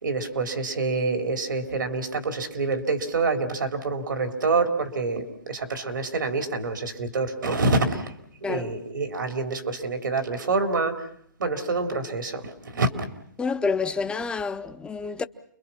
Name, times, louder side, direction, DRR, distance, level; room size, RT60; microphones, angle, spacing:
voice 1, 0.0-8.1 8.4-11.0 11.4-13.1, right 3 dB, 80° right, 3.9 m, -27 dB
voice 2, 13.4-15.3, left 4 dB, 10° left, 0.9 m, -28 dB
29.5 x 23.0 x 5.8 m
hypercardioid pair, 135°, 10 cm